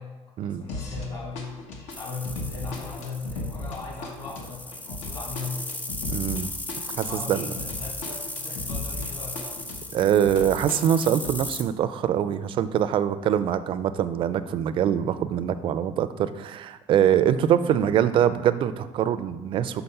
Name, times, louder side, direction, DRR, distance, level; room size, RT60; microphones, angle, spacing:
voice 1, 0.0-1.6 2.0-5.8 7.0-9.6, left 4 dB, 40° left, -2 dB, 1.9 m, -38 dB
sound 1, 0.7-1.1 1.3-9.1 9.3-11.3, left 2 dB, 80° left, 1.1 m, -36 dB
sound 2, 1.9-11.6, left 2 dB, 15° left, 0.6 m, -36 dB
voice 2, 6.1-6.5 7.0-7.5 9.9-19.8, right 9 dB, 50° right, 12 dB, 0.4 m, -23 dB
5.7 x 4.1 x 5.4 m, 1.2 s
cardioid pair, 125°, 12 cm